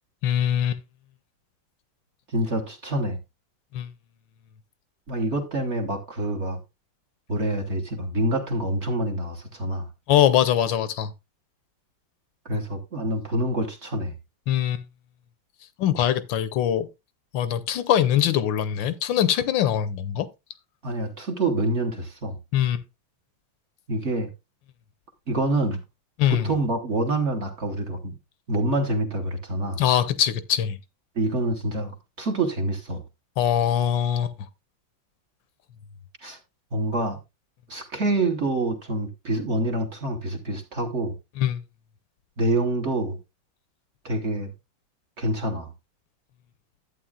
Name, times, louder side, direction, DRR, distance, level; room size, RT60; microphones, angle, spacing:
voice 1, 0.2-0.8 3.7-3.9 10.1-11.1 14.5-14.8 15.8-16.9 17.3-20.3 22.5-22.8 26.2-26.5 29.8-30.8 33.4-34.3 41.4-41.6, left 10 dB, 75° left, 1.4 m, -22 dB
voice 2, 2.3-3.2 5.1-6.6 7.3-9.9 12.4-14.1 20.8-22.4 23.9-24.3 25.3-25.8 26.3-28.1 28.5-29.8 31.1-33.0 36.2-36.4 36.7-37.2 37.7-41.1 42.4-43.2 44.0-44.5 45.2-45.7, right 2 dB, 40° right, 1.2 m, -26 dB
11.5 x 8.3 x 2.3 m
omnidirectional pair, 2.1 m